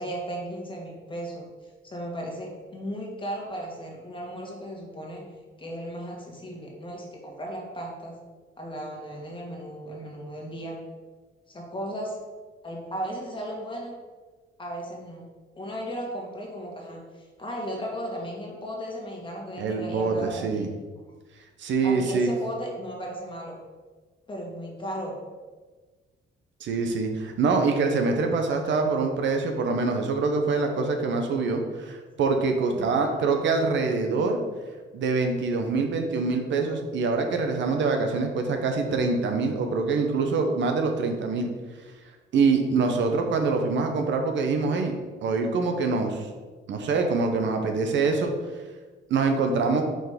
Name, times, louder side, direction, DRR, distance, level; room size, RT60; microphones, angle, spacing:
voice 1, 0.0-1.5 1.8-5.2 5.6-8.1 8.6-10.8 11.5-12.2 12.6-13.9 14.6-15.2 15.6-20.7 21.8-23.6 24.3-25.1 32.7-33.2, equal, 25° left, -1 dB, 1.8 m, -36 dB
voice 2, 19.6-20.7 21.6-22.3 26.6-34.4 34.9-41.5 42.3-44.9 45.2-46.2 46.7-48.3 49.1-49.8, right 4 dB, 70° right, 4 dB, 0.8 m, -25 dB
5.1 x 3.9 x 5.1 m, 1.3 s
cardioid pair, 90°, 20 cm